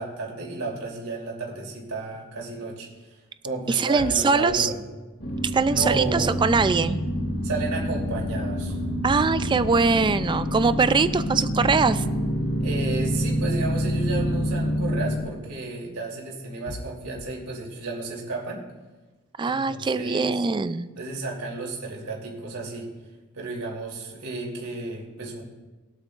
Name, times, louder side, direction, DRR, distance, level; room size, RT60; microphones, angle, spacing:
voice 1, 0.0-3.2 3.4-4.8 5.7-6.3 7.4-8.8 12.6-18.6 19.4-20.4 21.0-22.9 23.3-25.4, right 3 dB, 75° right, -2 dB, 3.1 m, -32 dB
voice 2, 3.7-4.7 5.5-7.0 9.0-12.0 19.4-20.9, right 4 dB, 20° right, 13 dB, 0.3 m, -22 dB
sound 1, 4.0-4.6 6.5-7.1 9.0-9.6 11.6-12.2 14.1-14.7 16.7-17.2, left 1 dB, 40° left, 0.7 m, -37 dB
sound 2, 5.2-15.2, equal, 75° left, 1.9 m, -27 dB
22.0 x 8.3 x 2.5 m, 1.2 s
head